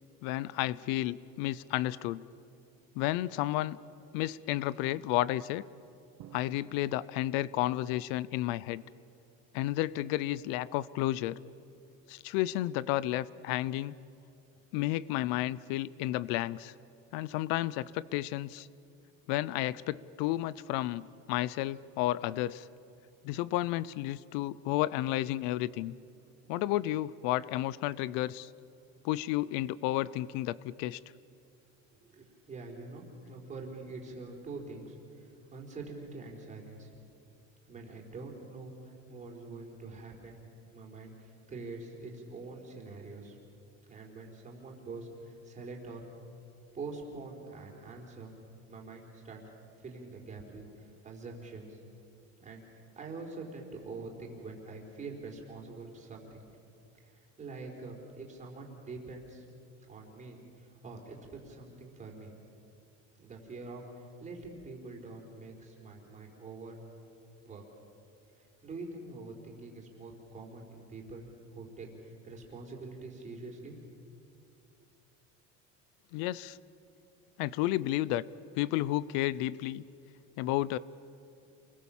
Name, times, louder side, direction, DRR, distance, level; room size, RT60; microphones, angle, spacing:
voice 1, 0.2-2.2 3.0-3.8 4.1-5.6 6.3-8.8 9.5-11.4 12.1-14.0 14.7-16.7 17.1-18.7 19.3-22.7 23.2-25.9 26.5-28.5 29.0-31.0 76.1-76.6 77.4-78.2 78.5-79.8 80.4-80.8, left 15 dB, 85° left, 20 dB, 0.6 m, -32 dB
Drum, 6.2-7.9, right 10 dB, 60° right, 1.4 m, -55 dB
voice 2, 32.1-36.9 37.6-40.4 40.7-43.4 43.9-46.0 46.7-48.3 48.7-49.4 49.8-51.8 52.4-56.5 57.0-59.5 59.9-62.3 63.2-66.8 67.4-67.6 68.3-74.1, right 3 dB, 20° right, 0 dB, 4.3 m, -45 dB
28.0 x 21.5 x 7.3 m, 2.6 s
cardioid pair, 155°, 33 cm